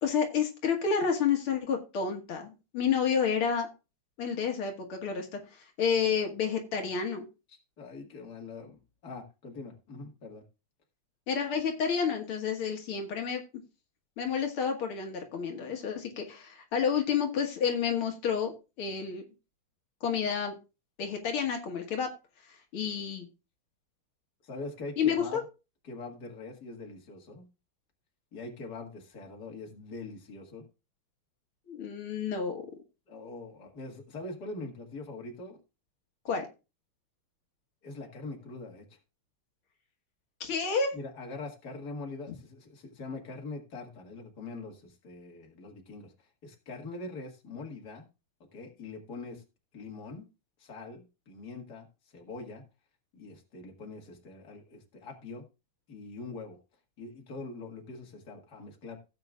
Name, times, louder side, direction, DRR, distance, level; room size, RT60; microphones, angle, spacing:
voice 1, 0.0-3.7 4.2-5.4 5.8-7.2 11.3-13.4 14.2-18.5 18.8-19.2 20.0-20.5 21.0-22.1 22.7-23.3 25.0-25.4 31.7-32.6 36.3-36.5 40.4-40.9, left 6 dB, 80° left, 3 dB, 2.4 m, -30 dB
voice 2, 7.5-10.4 24.4-25.4 25.8-27.4 28.3-30.6 33.1-35.6 37.8-38.9 40.9-46.1 46.4-48.1 48.5-49.4 49.7-50.2 50.6-51.9 52.1-52.6 53.1-55.4 55.9-56.6 57.0-59.0, left 3 dB, 50° left, 1 dB, 2.4 m, -43 dB
16.5 x 7.9 x 2.4 m, 0.30 s
omnidirectional pair, 2.4 m